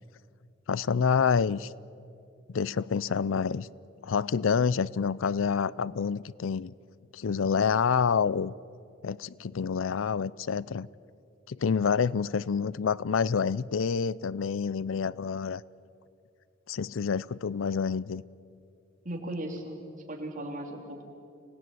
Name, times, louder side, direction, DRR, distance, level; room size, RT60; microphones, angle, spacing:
voice 1, 0.7-1.7 2.5-3.7 4.0-6.7 7.1-8.5 9.0-10.9 11.5-15.6 16.7-18.2, left 6 dB, 85° left, 0.5 m, -27 dB
voice 2, 19.0-19.8 20.1-21.0, right 1 dB, 40° right, 3.4 m, -36 dB
25.5 x 18.0 x 9.3 m
head